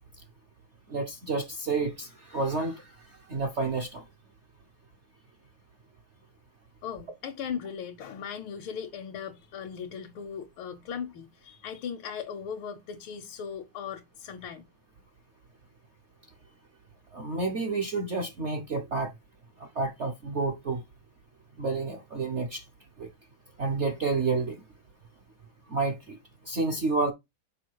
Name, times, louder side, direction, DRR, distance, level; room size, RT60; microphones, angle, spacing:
voice 1, 0.9-2.9 3.3-4.0 17.1-19.1 19.6-20.8 21.6-22.6 23.0-23.1 23.6-24.6 25.7-26.2 26.5-27.1, right 3 dB, 65° right, 0.7 m, -29 dB
voice 2, 6.8-14.6, left 7 dB, 85° left, 1.6 m, -38 dB
6.5 x 4.5 x 4.6 m
omnidirectional pair, 2.2 m